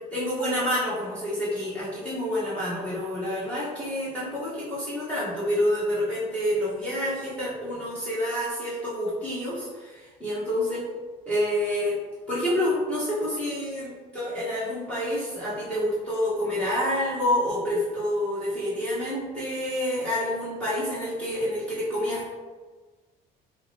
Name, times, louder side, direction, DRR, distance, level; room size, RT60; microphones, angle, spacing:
voice 1, 0.1-10.8 11.3-12.0 12.3-22.3, left 1 dB, 5° left, -10 dB, 1.1 m, -28 dB
4.9 x 2.1 x 2.7 m, 1.3 s
cardioid pair, 110°, 17 cm